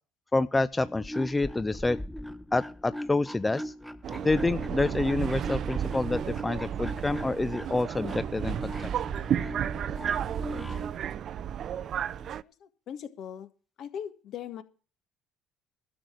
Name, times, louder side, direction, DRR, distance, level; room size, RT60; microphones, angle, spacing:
voice 1, 0.3-2.0 2.5-3.7 4.2-8.7, left 2 dB, 20° left, 15 dB, 0.6 m, -27 dB
sound 1, 0.7-11.0, left 1 dB, ahead, 1.0 m, -40 dB
Subway metro underground, 4.0-12.4, right 9 dB, 55° right, 0.5 m, -32 dB
voice 2, 11.4-11.7 12.1-13.5 13.8-14.6, left 8 dB, 60° left, 10 dB, 1.8 m, -41 dB
12.5 x 6.4 x 9.6 m, 0.38 s
hypercardioid pair, 65°, 0 cm